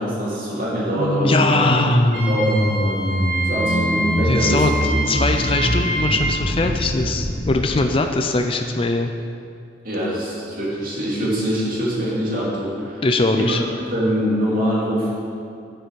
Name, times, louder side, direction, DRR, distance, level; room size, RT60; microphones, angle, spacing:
voice 1, 0.0-1.6 2.3-3.0 3.5-5.0 9.8-13.0 13.3-13.6 13.9-15.1, equal, 50° right, -5 dB, 2.7 m, -23 dB
sound 1, 1.0-7.7, equal, 55° left, 1.3 m, -23 dB
voice 2, 1.2-2.1 4.3-9.1 13.0-13.6, left 3 dB, 30° left, 5 dB, 0.5 m, -21 dB
Wind instrument woodwind instrument, 2.1-6.2, right 2 dB, 85° right, 2.3 m, -26 dB
12.5 x 6.9 x 4.7 m, 2.4 s
head